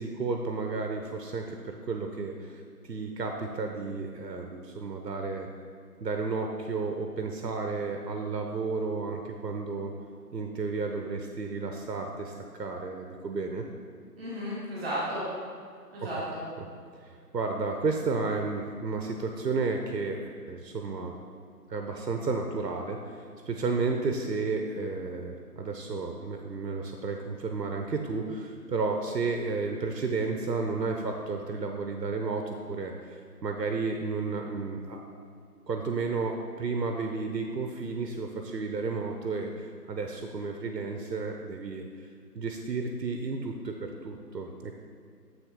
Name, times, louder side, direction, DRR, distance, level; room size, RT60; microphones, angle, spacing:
voice 1, 0.0-5.5 6.0-9.9 10.3-13.7 16.0-16.1 16.6-16.7 17.0-21.1 21.7-35.0 35.7-41.8 42.3-43.7 44.0-44.7, right 4 dB, 90° right, 3 dB, 0.8 m, -32 dB
voice 2, 14.2-15.2 15.9-16.4, equal, 5° right, -15 dB, 0.8 m, -33 dB
7.4 x 6.3 x 3.6 m, 2.3 s
figure-of-eight pair, 150°, 48 cm